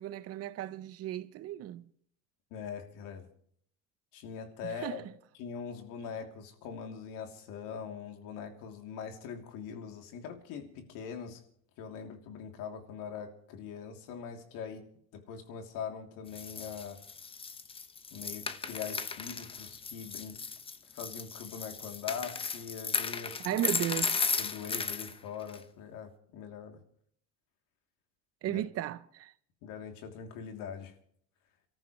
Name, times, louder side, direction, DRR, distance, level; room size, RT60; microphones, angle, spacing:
voice 1, 0.0-1.8 4.6-5.1 23.4-24.1 28.4-29.3, right 12 dB, 45° right, 0.8 m, -35 dB
voice 2, 2.5-3.3 4.1-5.0 5.4-11.4 11.8-14.9 15.1-17.0 18.1-20.4 20.8-23.6 24.4-26.8 28.4-28.6 29.6-30.9, left 7 dB, 70° left, 3.1 m, -42 dB
sound 1, 16.3-25.1 25.5-25.6, left 5 dB, 15° left, 0.8 m, -35 dB
29.5 x 14.0 x 3.2 m
cardioid pair, 145°, 33 cm